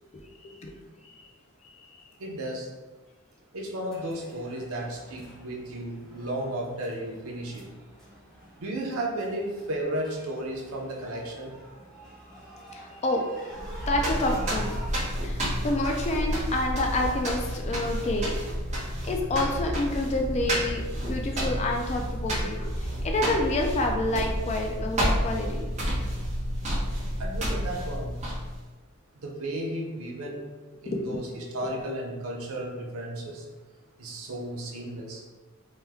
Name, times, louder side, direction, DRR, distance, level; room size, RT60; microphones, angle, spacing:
voice 1, 0.4-0.7 1.0-1.3 1.8-2.0 12.7-13.2 13.9-14.7 15.2-18.3 19.0-22.6 23.0-25.7 30.9-31.2, left 2 dB, 30° left, 2 dB, 0.3 m, -28 dB
voice 2, 2.2-2.7 3.5-7.6 8.6-11.5 27.2-28.2 29.2-30.5 30.8-33.5 34.0-35.2, right 1 dB, 80° right, 0 dB, 0.6 m, -34 dB
sound 1, 3.9-15.0, right 1 dB, ahead, 0.9 m, -47 dB
sound 2, 13.5-28.7, equal, 30° right, 0.7 m, -30 dB
3.0 x 2.1 x 3.4 m, 1.2 s
head